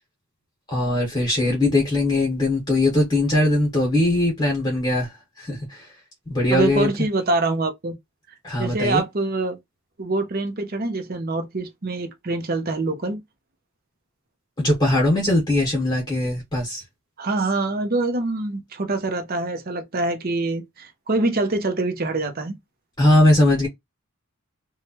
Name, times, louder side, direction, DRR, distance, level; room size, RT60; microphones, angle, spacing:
voice 1, 0.7-5.9 6.3-6.9 8.4-9.0 14.6-16.8 23.0-23.7, left 1 dB, 20° left, 1.2 m, -20 dB
voice 2, 6.5-8.0 8.6-9.6 10.0-13.2 17.2-22.6, right 2 dB, 45° right, 0.7 m, -25 dB
3.2 x 2.3 x 2.9 m
head